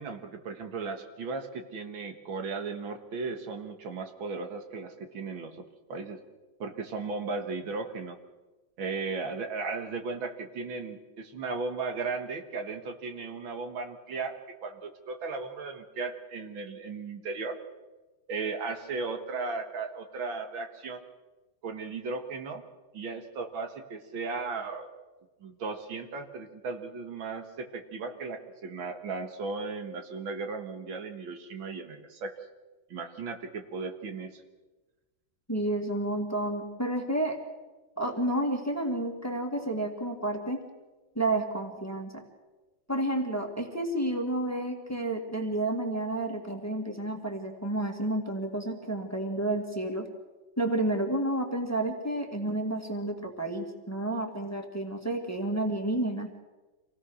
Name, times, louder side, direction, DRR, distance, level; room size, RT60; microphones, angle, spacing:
voice 1, 0.0-5.6 5.9-6.2 6.6-8.2 8.8-14.4 14.6-17.6 18.3-21.0 21.6-22.6 22.9-24.9 25.4-32.3 32.9-34.4, right 4 dB, 75° right, 6 dB, 2.3 m, -36 dB
voice 2, 35.5-37.4 38.0-40.6 41.2-42.2 42.9-50.1 50.6-56.3, right 1 dB, 10° left, 3 dB, 1.9 m, -30 dB
26.0 x 17.5 x 6.3 m, 1.2 s
omnidirectional pair, 2.2 m